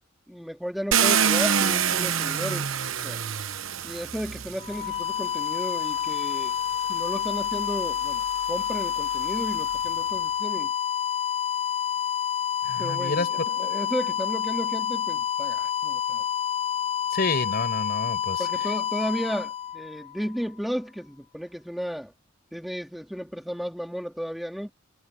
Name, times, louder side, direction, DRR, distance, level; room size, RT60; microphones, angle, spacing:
voice 1, 0.3-2.7 3.0-3.2 3.8-6.6 6.9-8.2 8.5-10.7 12.8-16.2 18.4-22.1 22.5-24.7, equal, ahead, 3.6 m, -33 dB
Car, 0.9-5.0 6.0-6.1 6.6-9.9, right 7 dB, 70° right, 1.1 m, -27 dB
sound 1, 4.6-20.4, left 9 dB, 30° left, 0.8 m, -28 dB
voice 2, 12.6-13.5 17.1-18.7, left 3 dB, 50° left, 6.0 m, -29 dB
head